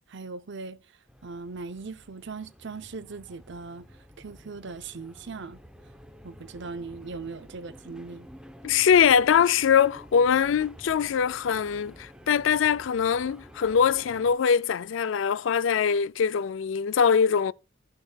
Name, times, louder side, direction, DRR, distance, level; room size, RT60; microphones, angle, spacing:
voice 1, 0.1-0.8 1.2-3.9 4.2-5.6 6.2-8.3, right 4 dB, 65° right, 0.8 m, -39 dB
sound 1, 1.1-14.4, equal, 5° right, 0.8 m, -50 dB
voice 2, 8.6-17.5, left 7 dB, 70° left, 0.4 m, -22 dB
13.5 x 6.8 x 2.3 m
head